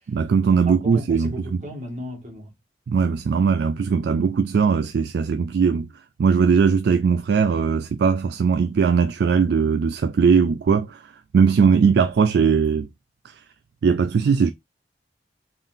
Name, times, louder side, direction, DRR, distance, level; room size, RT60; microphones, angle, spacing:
voice 1, 0.1-1.3 2.9-5.9 6.2-12.9 13.2-13.4 13.8-14.5, right 6 dB, 60° right, 0.3 m, -19 dB
voice 2, 0.7-2.5 3.9-4.1, equal, 40° right, 1.7 m, -36 dB
3.7 x 3.7 x 2.6 m
head